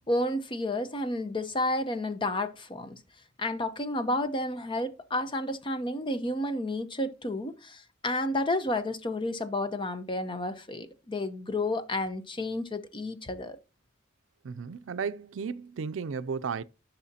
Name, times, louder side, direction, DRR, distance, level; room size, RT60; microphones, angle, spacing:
voice 1, 0.0-3.0 3.4-13.6, left 1 dB, 25° left, 0.7 m, -31 dB
voice 2, 14.4-16.6, right 5 dB, 80° right, 0.4 m, -34 dB
11.0 x 5.6 x 2.8 m
head